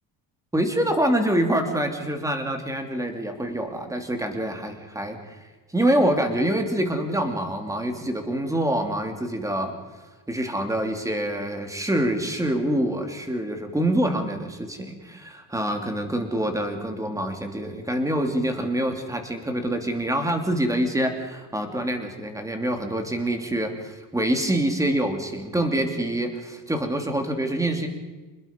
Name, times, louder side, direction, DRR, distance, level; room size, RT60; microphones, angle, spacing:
voice 1, 0.5-5.4 5.7-9.8 10.3-27.9, right 1 dB, 5° right, 5 dB, 3.0 m, -26 dB
28.5 x 20.5 x 5.4 m, 1.2 s
cardioid pair, 155°, 44 cm